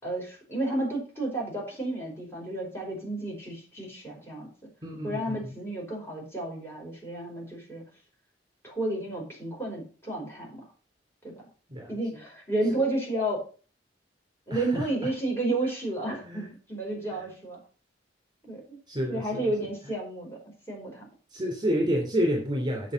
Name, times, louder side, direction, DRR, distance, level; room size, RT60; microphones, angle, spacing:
voice 1, 0.0-4.5 5.0-7.8 8.6-10.6 11.2-11.3 11.9-13.4 14.5-17.6 18.5-18.8 19.1-20.4 20.7-21.0, right 1 dB, 15° left, -2 dB, 4.9 m, -31 dB
voice 2, 4.8-5.4 11.7-12.0 12.7-12.8 14.5-14.9 16.2-16.5 18.4-18.5 18.9-19.5 21.3-22.9, equal, 25° right, 0 dB, 3.0 m, -29 dB
8.3 x 7.0 x 6.4 m, 0.38 s
head